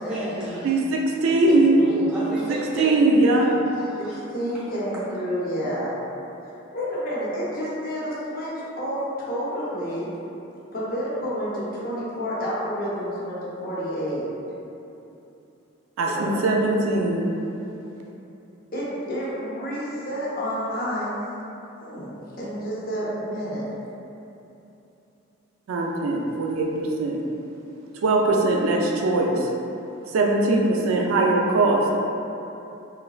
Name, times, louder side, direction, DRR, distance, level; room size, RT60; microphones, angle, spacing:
voice 1, 0.0-0.7 1.3-3.1 3.4-4.2 4.5-4.6 4.9-5.0, right 1 dB, 5° right, -10 dB, 0.6 m, -34 dB
voice 2, 0.6-1.8 2.5-3.5 16.0-17.3 25.7-27.2 28.0-29.5 30.1-31.8, right 2 dB, 80° right, 0 dB, 0.3 m, -21 dB
voice 3, 4.3-5.9 6.7-10.1 10.7-14.2 16.0-16.4 18.7-21.2 21.8-23.6, equal, 45° left, -7 dB, 0.6 m, -29 dB
3.1 x 2.3 x 2.3 m, 2.9 s
head